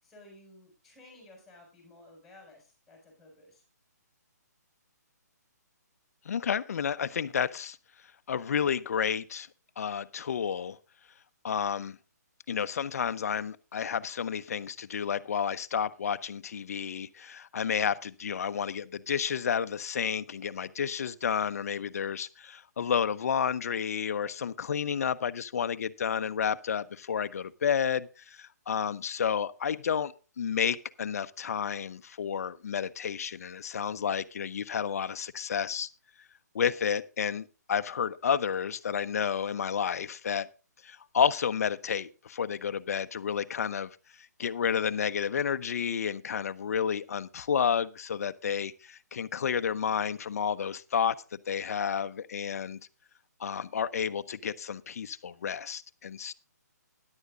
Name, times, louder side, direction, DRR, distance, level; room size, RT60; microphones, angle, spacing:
voice 1, 0.0-3.6, left 1 dB, ahead, 6.7 m, -55 dB
voice 2, 6.2-7.8 8.3-9.5 9.8-10.8 11.4-12.0 12.5-35.9 36.5-40.5 40.8-51.2 51.5-52.8 53.4-56.3, left 7 dB, 60° left, 0.8 m, -31 dB
16.0 x 11.0 x 2.5 m
hypercardioid pair, 155°, 10 cm